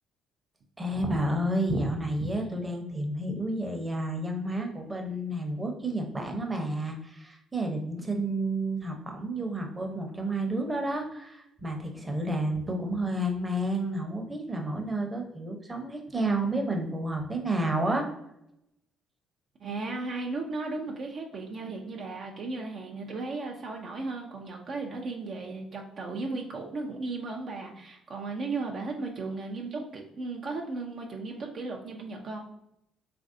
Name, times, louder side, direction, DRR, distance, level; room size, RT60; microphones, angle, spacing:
voice 1, 0.8-18.1, right 1 dB, 20° right, 2 dB, 0.7 m, -30 dB
voice 2, 19.6-32.5, right 3 dB, 55° right, 1 dB, 0.4 m, -35 dB
3.1 x 2.5 x 2.5 m, 0.82 s
supercardioid pair, 65°, 0 cm